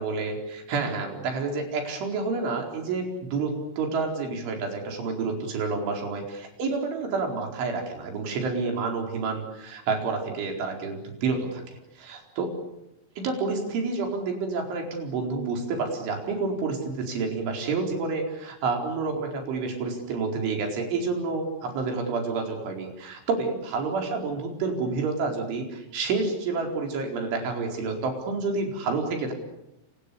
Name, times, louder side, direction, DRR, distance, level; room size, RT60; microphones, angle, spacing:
voice 1, 0.0-12.6 13.2-29.3, right 4 dB, 80° right, 2 dB, 6.9 m, -29 dB
29.0 x 27.5 x 7.1 m, 0.86 s
omnidirectional pair, 5.4 m